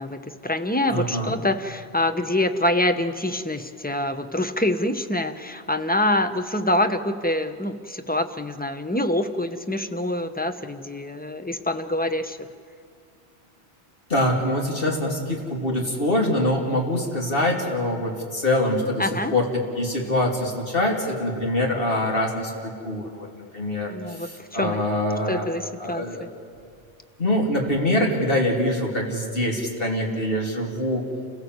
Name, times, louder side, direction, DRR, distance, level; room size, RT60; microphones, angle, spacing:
voice 1, 0.0-12.5 19.0-19.3 23.9-24.8 25.3-26.3, left 1 dB, 10° left, 8 dB, 0.8 m, -25 dB
voice 2, 0.9-1.3 14.1-19.5 19.7-23.3 23.5-25.4 25.8-26.2 27.2-31.1, left 1 dB, 55° left, 0 dB, 3.3 m, -24 dB
29.0 x 16.5 x 8.0 m, 2.2 s
omnidirectional pair, 1.1 m